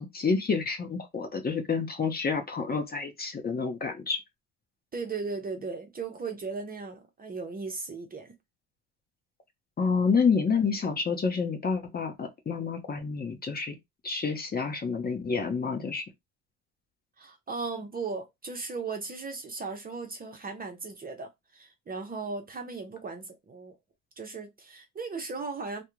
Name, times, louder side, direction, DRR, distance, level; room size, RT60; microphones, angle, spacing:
voice 1, 0.0-4.2 9.8-13.8 14.0-16.0, left 5 dB, 25° left, 0.8 m, -28 dB
voice 2, 4.9-8.3 17.2-23.8 24.2-25.8, right 4 dB, 25° right, 0.7 m, -37 dB
2.3 x 2.2 x 3.1 m
hypercardioid pair, 75°, 37 cm